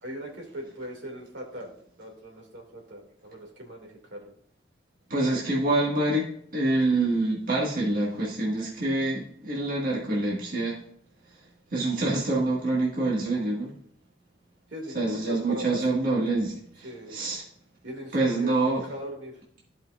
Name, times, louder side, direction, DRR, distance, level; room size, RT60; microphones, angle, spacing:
voice 1, 0.0-4.3 14.7-15.8 16.2-16.3 16.8-17.1 17.8-19.4, equal, 70° right, 0 dB, 2.4 m, -40 dB
voice 2, 5.1-10.8 11.7-13.7 14.9-17.4 18.1-18.8, right 2 dB, 45° right, -4 dB, 1.9 m, -26 dB
14.0 x 5.3 x 2.5 m, 0.64 s
head